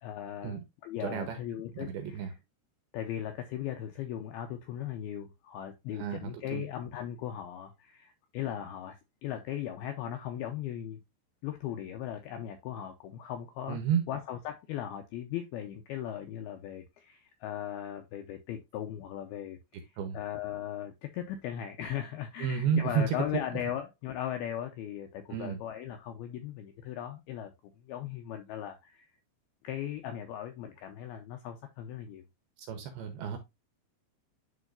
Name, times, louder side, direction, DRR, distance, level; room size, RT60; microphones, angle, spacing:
voice 1, 0.0-2.4 2.9-11.0 11.4-13.8 14.1-29.1 29.6-32.2, left 10 dB, 85° left, 2.2 m, -38 dB
voice 2, 1.0-1.4 1.8-2.3 5.9-6.6 13.7-14.0 20.0-20.2 22.4-23.1 25.3-25.6 32.7-33.4, right 8 dB, 75° right, 2.4 m, -31 dB
11.0 x 4.0 x 2.5 m
omnidirectional pair, 5.3 m